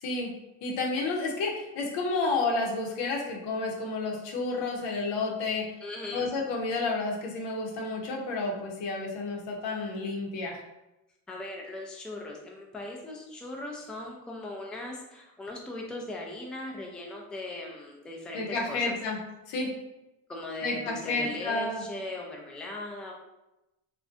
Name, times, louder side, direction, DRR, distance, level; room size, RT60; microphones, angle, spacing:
voice 1, 0.0-0.3 0.6-5.7 6.1-10.6 18.3-19.2 19.5-19.7 20.6-21.8, left 3 dB, 70° left, 0 dB, 0.7 m, -30 dB
voice 2, 5.8-6.3 11.3-19.0 20.3-23.1, left 2 dB, ahead, 0 dB, 0.4 m, -39 dB
2.4 x 2.1 x 2.4 m, 0.94 s
supercardioid pair, 65°, 44 cm